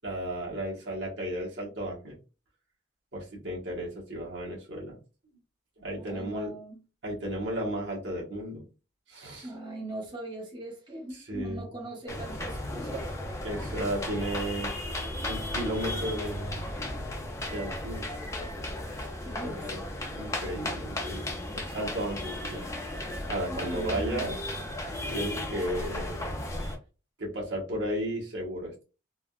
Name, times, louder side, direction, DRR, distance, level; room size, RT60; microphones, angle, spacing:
voice 1, 0.0-2.2 3.1-5.0 5.8-6.6 7.0-8.6 9.1-9.5 11.1-11.7 13.4-14.7 15.3-16.5 17.5-18.1 19.4-19.8 20.2-21.3 21.5-22.6 23.3-24.4 25.1-26.3 27.2-28.8, right 1 dB, 65° right, 1.2 m, -34 dB
voice 2, 6.0-6.8 9.4-13.1 19.2-19.6 23.5-24.2, right 1 dB, 25° right, 1.0 m, -40 dB
sound 1, 12.1-26.8, left 1 dB, 15° left, 0.5 m, -35 dB
3.5 x 2.3 x 2.3 m
head